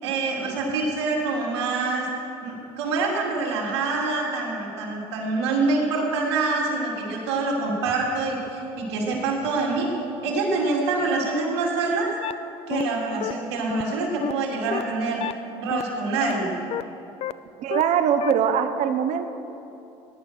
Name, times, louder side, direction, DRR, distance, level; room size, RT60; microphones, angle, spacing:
voice 1, 0.0-2.1 2.4-9.9 10.2-12.1 12.7-15.2 15.6-16.6, right 3 dB, 90° right, -3 dB, 3.6 m, -25 dB
sound 1, 12.2-12.3 12.7-12.8 13.2-13.3 13.7-13.8 14.2-14.3 14.7-14.8 15.2-15.3 15.7-15.8 16.2-16.3 16.7-16.8 17.2-17.3 17.7-17.8 18.2-18.3, left 12 dB, 45° left, 0.5 m, -28 dB
voice 2, 17.6-19.3, right 8 dB, 60° right, 9 dB, 1.2 m, -22 dB
17.5 x 11.0 x 6.3 m, 2.8 s
supercardioid pair, 85°, 14 cm